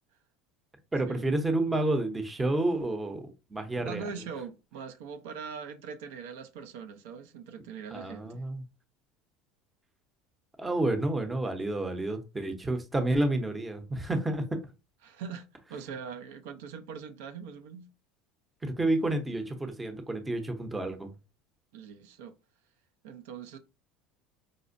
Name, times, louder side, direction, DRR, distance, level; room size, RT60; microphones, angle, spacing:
voice 1, 0.9-4.0 7.9-8.6 10.6-14.4 18.6-21.1, right 2 dB, 10° right, 0.6 m, -30 dB
voice 2, 3.8-8.4 15.0-17.9 21.7-22.4 23.0-23.6, right 6 dB, 85° right, 0.5 m, -42 dB
4.9 x 2.1 x 2.5 m
supercardioid pair, 125°, 0 cm